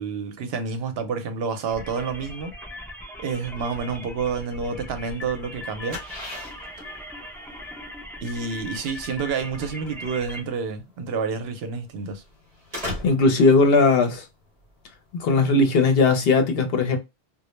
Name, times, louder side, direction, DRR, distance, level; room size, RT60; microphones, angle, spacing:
voice 1, 0.0-2.5 3.2-6.0 8.2-12.2, right 5 dB, 70° right, 0.8 m, -29 dB
sound 1, 1.7-10.4, left 1 dB, 5° left, 0.4 m, -39 dB
sound 2, 5.4-15.8, left 1 dB, 40° right, 0.8 m, -40 dB
voice 2, 13.0-14.2 15.1-17.0, left 3 dB, 65° left, 0.8 m, -18 dB
2.1 x 2.0 x 3.0 m
omnidirectional pair, 1.1 m